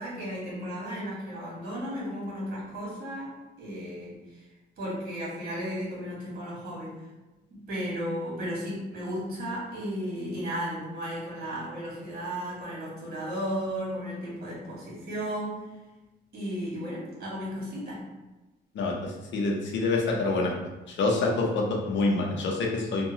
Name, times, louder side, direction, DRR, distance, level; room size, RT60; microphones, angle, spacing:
voice 1, 0.0-4.4 4.8-6.9 7.5-15.6 16.3-18.0, equal, 50° right, -6 dB, 1.4 m, -34 dB
voice 2, 18.7-20.5 20.9-23.1, left 3 dB, 65° left, 0 dB, 0.7 m, -27 dB
2.7 x 2.2 x 2.8 m, 1.1 s
cardioid pair, 90°, 20 cm